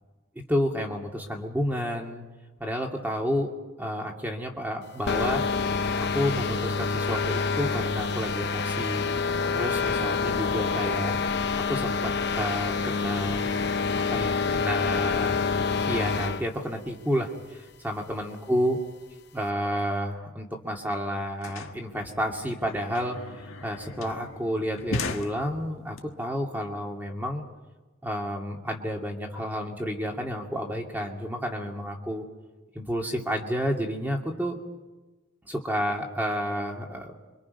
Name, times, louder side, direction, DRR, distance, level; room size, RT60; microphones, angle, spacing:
voice 1, 0.5-2.2 2.6-3.5 3.8-5.4 6.0-9.1 9.5-11.2 11.7-13.5 14.1-15.4 15.7-18.8 19.3-23.2 23.6-27.4 28.0-32.2 32.7-34.6 35.5-37.1, equal, 10° right, 1 dB, 2.5 m, -30 dB
sound 1, 5.1-16.4, left 4 dB, 50° left, 0.9 m, -27 dB
sound 2, 20.5-20.6 20.8-26.0, left 3 dB, 75° left, 1.6 m, -38 dB
27.5 x 24.5 x 5.5 m, 1.2 s
head